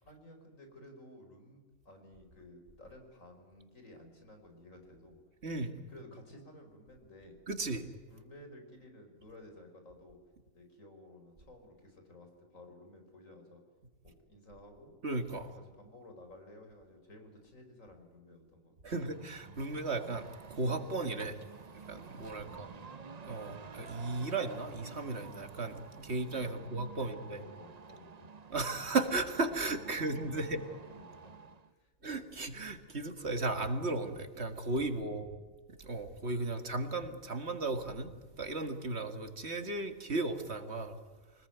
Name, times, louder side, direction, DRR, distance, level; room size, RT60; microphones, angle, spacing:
voice 1, 0.0-5.2 5.9-7.4 8.1-10.2 10.5-13.6 14.0-14.9 15.4-18.8 22.4-23.2 26.4-26.7 27.0-28.3 29.9-30.0 30.4-32.1 34.9-35.4, left 1 dB, 75° left, 5 dB, 5.4 m, -55 dB
voice 2, 5.4-5.8 7.5-7.9 15.0-15.5 18.8-21.4 21.9-22.7 23.3-27.4 28.5-30.6 32.0-35.3 35.8-38.1 38.4-41.0, right 3 dB, 55° right, 8 dB, 2.2 m, -35 dB
sound 1, 18.9-31.7, right 5 dB, 35° right, 0.8 m, -51 dB
25.0 x 20.5 x 9.3 m, 1.4 s
omnidirectional pair, 1.4 m